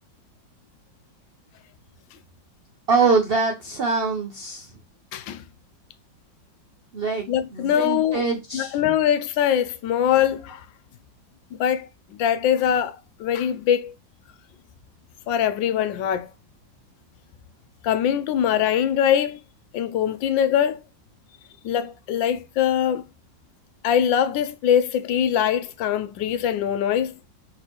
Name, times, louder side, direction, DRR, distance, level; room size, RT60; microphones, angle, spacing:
voice 1, 2.9-4.7 6.9-8.8, right 4 dB, 85° right, 0.5 m, -24 dB
voice 2, 5.1-5.4 7.3-8.2 8.5-10.6 11.5-11.9 12.2-13.9 15.3-16.3 17.8-19.4 19.7-20.8 21.6-23.0 23.8-27.1, left 9 dB, 80° left, 1.3 m, -22 dB
4.2 x 3.9 x 3.0 m
omnidirectional pair, 2.0 m